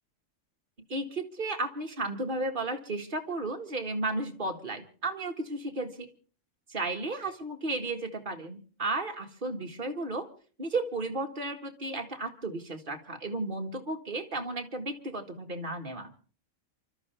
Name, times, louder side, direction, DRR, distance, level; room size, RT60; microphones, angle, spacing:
voice 1, 0.9-6.1 6.7-10.3 10.6-16.1, right 2 dB, 40° right, 3 dB, 2.1 m, -34 dB
28.5 x 13.0 x 3.5 m, 0.39 s
omnidirectional pair, 1.3 m